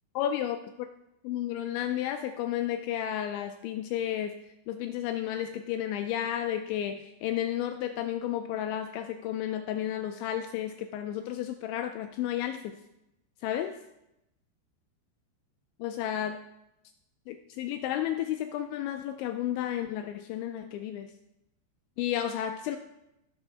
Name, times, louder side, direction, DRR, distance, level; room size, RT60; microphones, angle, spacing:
voice 1, 0.2-0.6 1.2-4.4 4.7-12.8 13.4-13.8 15.8-16.4 17.3-21.1 22.0-22.8, left 11 dB, 85° left, 7 dB, 2.7 m, -32 dB
17.5 x 6.8 x 3.4 m, 0.86 s
omnidirectional pair, 5.7 m